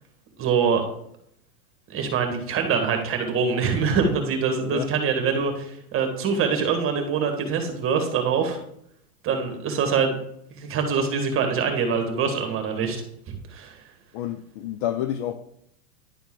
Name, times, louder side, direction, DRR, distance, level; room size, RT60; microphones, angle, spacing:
voice 1, 0.4-0.8 1.9-8.6 9.2-10.1 10.5-13.0 13.5-13.8, right 5 dB, 30° right, 1.7 m, -24 dB
voice 2, 4.6-4.9 14.1-15.3, left 11 dB, 35° left, 0.4 m, -29 dB
10.5 x 4.2 x 3.7 m
hypercardioid pair, 120°, 46 cm